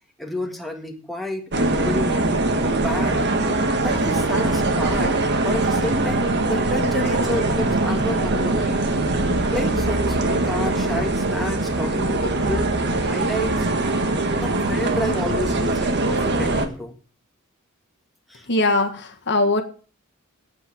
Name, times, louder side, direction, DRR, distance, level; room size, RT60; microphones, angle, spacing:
voice 1, 0.2-3.2 3.8-8.8 9.5-12.8 13.1-13.7 14.4-16.9 18.3-18.5, left 1 dB, ahead, 1 dB, 1.6 m, -30 dB
sound 1, 1.5-16.7, right 2 dB, 50° right, 1.5 m, -22 dB
voice 2, 18.5-19.6, left 2 dB, 55° left, 5 dB, 1.6 m, -20 dB
8.7 x 8.1 x 8.5 m, 0.39 s
head